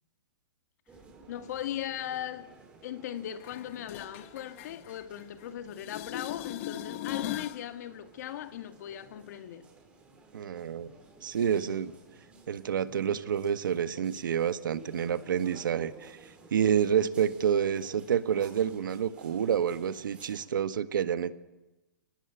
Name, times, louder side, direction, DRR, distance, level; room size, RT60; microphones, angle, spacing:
sound 1, 0.9-20.5, right 3 dB, 10° right, 5.2 m, -55 dB
voice 1, 1.3-2.5 2.8-9.7, left 11 dB, 55° left, 2.1 m, -38 dB
sound 2, 3.4-5.5 5.7-7.6 13.4-13.5, left 12 dB, 40° left, 1.1 m, -40 dB
voice 2, 10.3-10.9 11.2-11.9 12.5-16.2 16.5-21.3, right 8 dB, 85° right, 1.6 m, -28 dB
29.0 x 19.5 x 9.1 m
hypercardioid pair, 155°, 11 cm